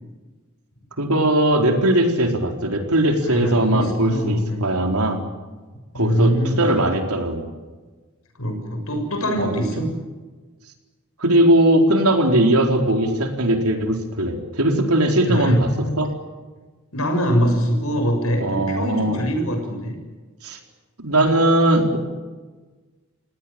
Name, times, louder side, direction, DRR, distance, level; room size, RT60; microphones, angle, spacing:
voice 1, 1.0-5.2 5.9-7.5 9.4-9.6 11.2-15.7 16.0-16.1 18.4-19.2 20.4-20.6 21.0-22.0, right 1 dB, 85° right, 3 dB, 4.3 m, -19 dB
voice 2, 3.3-4.6 5.9-6.6 8.4-9.9 15.3-15.9 16.9-20.0, equal, 80° left, 4 dB, 7.1 m, -23 dB
28.5 x 18.5 x 9.0 m, 1.3 s
head